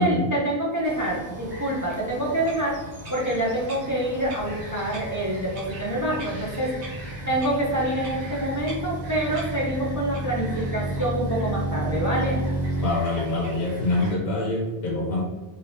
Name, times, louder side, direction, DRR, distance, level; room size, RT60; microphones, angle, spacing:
voice 1, 0.0-6.7 7.3-12.4, right 1 dB, 25° right, -4 dB, 0.5 m, -26 dB
Bird vocalization bird call bird song, 0.8-14.1, equal, 85° right, 1.3 m, -39 dB
sound 1, 4.2-12.9, right 1 dB, 35° left, 1.2 m, -32 dB
voice 2, 12.8-15.2, left 2 dB, 65° left, -2 dB, 0.8 m, -25 dB
3.3 x 2.8 x 2.6 m, 1.2 s
omnidirectional pair, 1.1 m